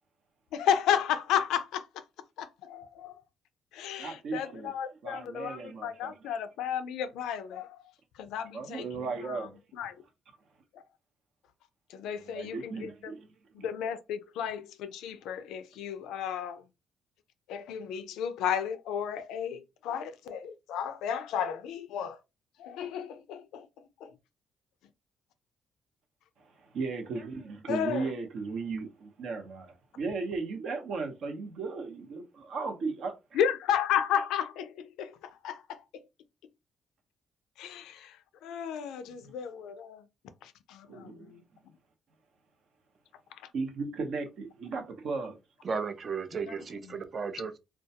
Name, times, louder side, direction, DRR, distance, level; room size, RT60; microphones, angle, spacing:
voice 1, 0.5-2.0 2.4-3.2 3.7-7.8 8.2-9.5 9.8-9.9 10.7-10.8 11.9-13.1 13.5-16.6 17.5-22.2 22.6-24.1 27.7-28.1 33.3-35.1 35.4-36.0 37.6-38.2 38.4-40.0 40.4-41.4 46.5-46.6, left 8 dB, 90° left, 0.3 m, -33 dB
voice 2, 4.0-4.8 5.0-6.4 8.5-9.6 12.1-13.7 26.4-33.4 40.9-41.3 43.5-45.4, right 4 dB, 70° right, 0.8 m, -36 dB
voice 3, 45.6-47.6, right 5 dB, 45° right, 0.4 m, -34 dB
2.2 x 2.1 x 2.7 m
cardioid pair, 90°, 0 cm